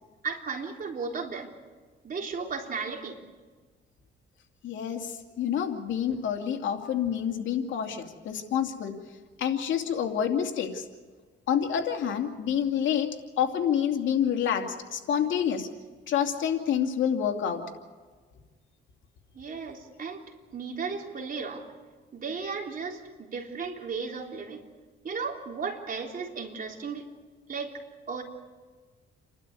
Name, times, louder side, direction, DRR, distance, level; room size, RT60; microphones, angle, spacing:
voice 1, 0.2-1.5 2.0-3.2 19.3-20.2 20.5-21.7 22.1-24.6 25.0-27.1 27.5-27.7 28.1-28.2, right 5 dB, 45° right, 1 dB, 3.7 m, -35 dB
voice 2, 4.6-9.0 9.4-10.9 11.5-15.7 16.1-17.6, left 8 dB, 75° left, 4 dB, 2.5 m, -28 dB
29.5 x 12.0 x 9.6 m, 1.4 s
cardioid pair, 90°, 20 cm